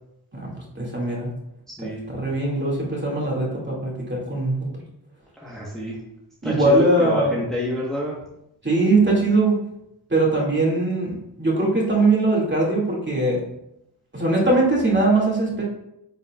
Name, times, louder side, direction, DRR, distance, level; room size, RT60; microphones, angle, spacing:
voice 1, 0.7-1.3 2.1-4.7 6.4-7.3 8.6-9.6 10.1-13.4 14.1-15.6, right 2 dB, 25° right, -4 dB, 2.4 m, -21 dB
voice 2, 1.8-2.2 5.4-6.0 6.4-8.2, left 1 dB, ahead, -5 dB, 1.3 m, -28 dB
9.8 x 5.3 x 2.4 m, 0.82 s
wide cardioid pair, 75°, 41 cm